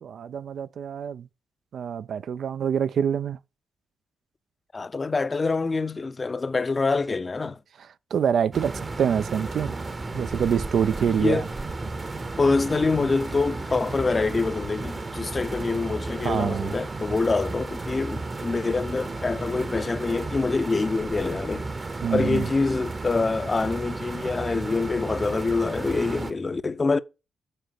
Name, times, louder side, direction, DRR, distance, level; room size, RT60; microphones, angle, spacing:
voice 1, 0.0-1.3 1.7-3.4 7.8-9.8 10.1-11.4 16.2-16.7 22.0-22.5, right 8 dB, 65° right, 0.3 m, -26 dB
voice 2, 4.7-7.6 11.1-11.5 12.4-21.7 22.1-27.0, left 3 dB, 35° left, 0.5 m, -25 dB
sound 1, 8.5-26.3, right 3 dB, 35° right, 0.9 m, -33 dB
6.6 x 4.2 x 6.2 m
supercardioid pair, 45°, 0 cm